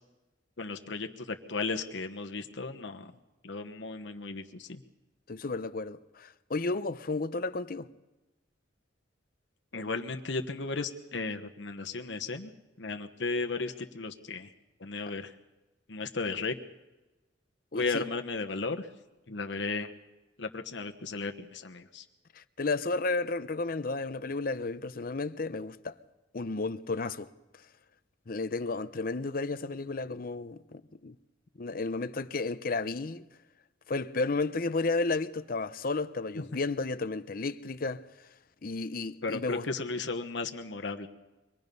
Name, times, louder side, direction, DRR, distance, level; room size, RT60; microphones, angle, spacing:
voice 1, 0.6-3.1 3.4-4.8 9.7-12.5 12.8-14.5 14.8-15.3 15.9-16.5 17.7-18.9 19.3-19.9 20.4-22.0 39.2-41.1, left 3 dB, 75° left, 1.2 m, -35 dB
voice 2, 5.3-7.9 17.7-18.1 22.3-26.0 26.3-27.7 28.3-31.2 31.6-33.2 33.9-38.3 38.6-39.7, left 3 dB, 50° left, 0.7 m, -33 dB
24.5 x 19.5 x 5.4 m
head